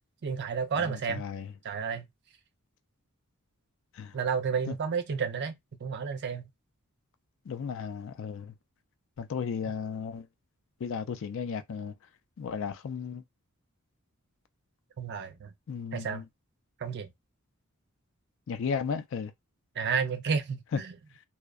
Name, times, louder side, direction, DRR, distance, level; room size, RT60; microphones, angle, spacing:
voice 1, 0.2-1.2 1.6-2.1 4.1-5.5 5.8-6.5 15.0-15.5 15.9-16.2 16.8-17.1 19.8-20.9, right 6 dB, 50° right, 0.4 m, -31 dB
voice 2, 0.8-1.5 4.0-4.1 4.7-4.8 7.5-8.5 9.2-10.3 10.8-11.9 12.4-13.2 15.7-16.2 18.5-19.3 20.7-20.8, left 6 dB, 60° left, 0.4 m, -34 dB
2.6 x 2.0 x 2.3 m
head